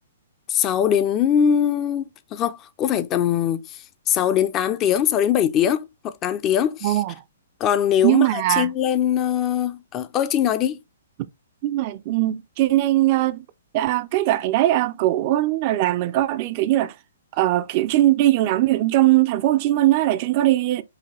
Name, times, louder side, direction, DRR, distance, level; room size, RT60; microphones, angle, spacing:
voice 1, 0.5-3.6 4.1-7.0 7.6-10.8, left 9 dB, 25° left, 0.4 m, -22 dB
voice 2, 6.8-7.1 8.0-8.7 11.6-13.5 13.7-16.9 17.4-20.8, right 15 dB, 35° right, 0.4 m, -20 dB
4.8 x 2.8 x 3.0 m
figure-of-eight pair, 120°, 0 cm